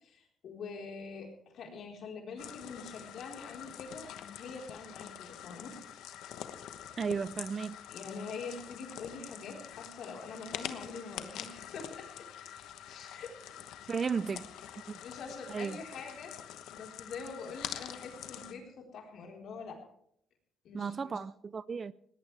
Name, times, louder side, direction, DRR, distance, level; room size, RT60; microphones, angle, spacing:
voice 1, 0.0-5.7 7.9-12.3 12.9-14.1 15.0-16.4 16.7-19.8 20.6-21.2, left 4 dB, 70° left, 4.3 m, -45 dB
sound 1, 2.4-18.5, left 10 dB, 90° left, 1.1 m, -46 dB
voice 2, 7.0-7.8 13.9-14.5 14.9-15.0 15.5-15.8 20.7-21.9, right 5 dB, 40° right, 0.5 m, -34 dB
20.0 x 17.5 x 3.4 m
cardioid pair, 90°, 0 cm